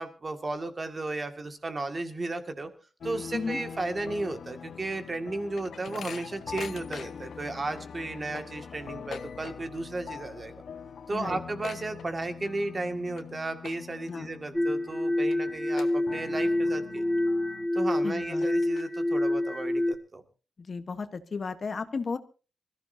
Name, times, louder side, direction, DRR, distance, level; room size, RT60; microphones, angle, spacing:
voice 1, 0.0-2.7 3.0-10.5 11.1-17.0 17.7-20.2, right 2 dB, 25° right, 7 dB, 2.0 m, -34 dB
sound 1, 3.0-17.7, left 6 dB, 65° left, 1.2 m, -44 dB
sound 2, 4.9-7.4 7.8-7.9 8.1-9.9 10.1-10.5 10.8-10.9 11.1-12.5 13.0-13.2 13.6-14.1 14.6-14.7 15.3-15.4 15.8-16.5 16.9-17.0 17.7-17.8 18.2-19.1, left 7 dB, 80° left, 1.3 m, -44 dB
sound 3, 14.5-19.9, left 1 dB, 5° left, 1.9 m, -27 dB
voice 2, 18.0-18.4 20.6-22.2, left 4 dB, 35° left, 10 dB, 1.1 m, -34 dB
26.0 x 15.0 x 2.7 m, 0.34 s
wide cardioid pair, 160°, 0 cm